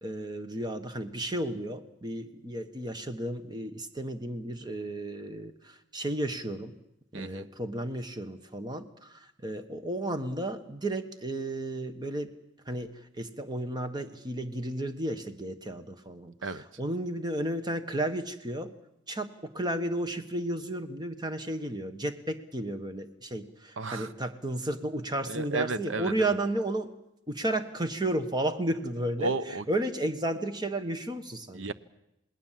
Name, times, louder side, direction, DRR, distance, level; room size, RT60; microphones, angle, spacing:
voice 1, 0.0-6.7 7.1-12.3 12.7-12.9 13.2-18.7 19.1-19.3 19.5-26.9 27.3-29.3 29.7-31.7, right 1 dB, 20° right, 8 dB, 1.4 m, -33 dB
voice 2, 7.1-7.5 16.4-16.6 23.8-24.1 25.2-26.3 29.2-29.7 31.5-31.7, right 3 dB, 80° right, 14 dB, 1.0 m, -33 dB
28.0 x 19.5 x 7.6 m, 0.83 s
head